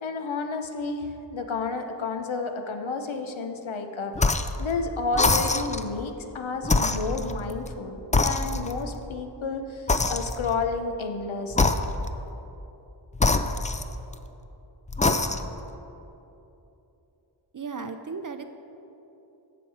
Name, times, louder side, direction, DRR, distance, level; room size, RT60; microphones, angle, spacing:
voice 1, 0.0-4.3 4.6-11.8, left 4 dB, 85° left, 6 dB, 0.9 m, -31 dB
sound 1, 4.2-4.6 5.1-5.9 6.6-7.8 8.1-8.9 9.9-10.6 11.5-12.2 13.2-14.3 14.9-15.6, left 3 dB, 15° left, 0.4 m, -25 dB
voice 2, 17.5-18.4, right 5 dB, 45° right, 8 dB, 0.5 m, -35 dB
16.5 x 6.1 x 4.7 m, 2.9 s
wide cardioid pair, 90°, 46 cm